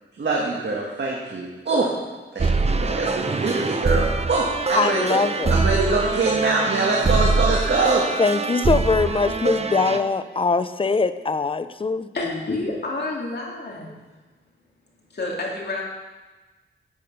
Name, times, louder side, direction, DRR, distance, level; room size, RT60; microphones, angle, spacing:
voice 1, 0.1-1.9 2.3-5.2 5.5-8.0, right 3 dB, 60° right, -3 dB, 1.8 m, -23 dB
sound 1, 2.4-10.0, right 3 dB, 30° right, 0.7 m, -24 dB
voice 2, 4.7-5.5 8.2-12.1, left 4 dB, 25° left, 12 dB, 0.5 m, -22 dB
voice 3, 12.1-13.9 15.1-15.9, left 2 dB, 55° left, -2 dB, 2.7 m, -29 dB
12.0 x 8.5 x 5.5 m, 1.2 s
wide cardioid pair, 115°, 20 cm